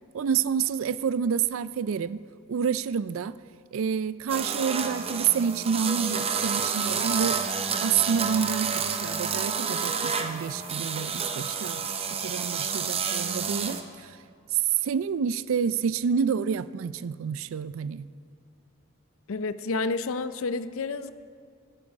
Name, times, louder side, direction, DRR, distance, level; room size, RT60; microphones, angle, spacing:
voice 1, 0.1-3.4 3.7-7.4 7.8-14.2 14.5-18.1, right 7 dB, 70° right, 0.3 m, -28 dB
sound 1, 4.3-13.8, right 6 dB, 25° right, 0.6 m, -29 dB
voice 2, 19.3-21.1, left 3 dB, 70° left, 0.5 m, -30 dB
15.5 x 9.9 x 5.3 m
head